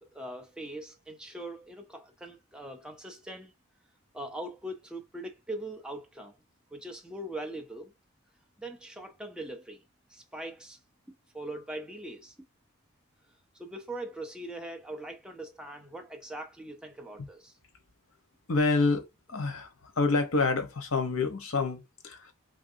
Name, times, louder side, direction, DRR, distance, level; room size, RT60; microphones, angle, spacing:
voice 1, 0.0-3.5 4.1-6.4 6.7-7.9 8.6-9.8 10.1-10.8 11.3-12.3 13.6-17.6, right 1 dB, 5° right, 0.4 m, -41 dB
voice 2, 18.5-19.0 19.3-19.7 20.0-22.3, left 3 dB, 70° left, 0.8 m, -27 dB
3.3 x 2.5 x 2.5 m
head